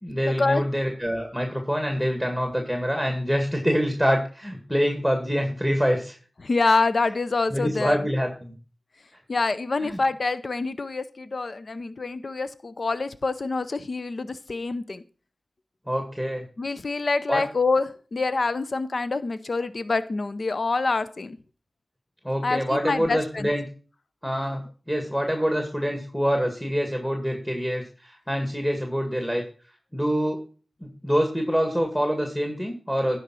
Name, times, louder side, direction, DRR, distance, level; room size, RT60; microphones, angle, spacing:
voice 1, 0.0-6.2 7.5-8.5 9.8-10.0 15.9-16.4 17.3-17.4 22.2-23.6 24.2-24.6 24.9-29.4 29.9-30.4 30.8-33.2, equal, 5° left, 3 dB, 2.0 m, -25 dB
voice 2, 6.4-8.0 9.3-15.0 16.6-21.4 22.4-23.5, left 3 dB, 60° left, 13 dB, 0.6 m, -26 dB
10.5 x 4.6 x 6.2 m, 0.38 s
cardioid pair, 45°, 0 cm